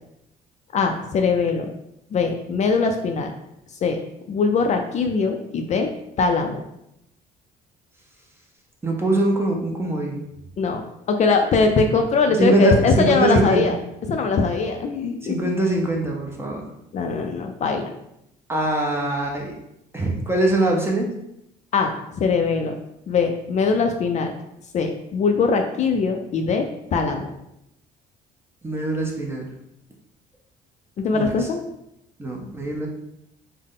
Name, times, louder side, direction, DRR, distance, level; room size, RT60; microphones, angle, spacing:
voice 1, 0.7-1.7 2.1-3.3 3.8-4.0 4.3-5.9 6.2-6.6 10.6-10.8 11.1-13.8 14.1-15.3 16.9-17.8 21.7-22.7 23.1-24.3 24.7-26.7 26.9-27.3 31.0-31.6, left 4 dB, 45° left, 4 dB, 0.4 m, -21 dB
voice 2, 8.8-10.2 12.4-13.6 15.1-16.7 18.5-19.5 19.9-21.1 28.6-29.4 31.1-31.5 32.2-32.9, right 2 dB, 15° right, 0 dB, 0.7 m, -23 dB
3.7 x 2.1 x 3.7 m, 0.81 s
cardioid pair, 110°, 17 cm